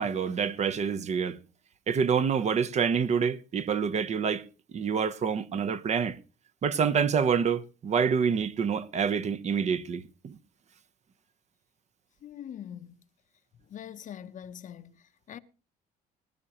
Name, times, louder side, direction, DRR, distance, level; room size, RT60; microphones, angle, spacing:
voice 1, 0.0-1.4 1.9-4.4 4.7-6.2 6.6-10.4, right 6 dB, 40° right, 0.8 m, -27 dB
voice 2, 12.2-13.0 13.7-15.4, left 9 dB, 50° left, 0.8 m, -43 dB
20.5 x 11.0 x 3.0 m
cardioid pair, 110°, 17 cm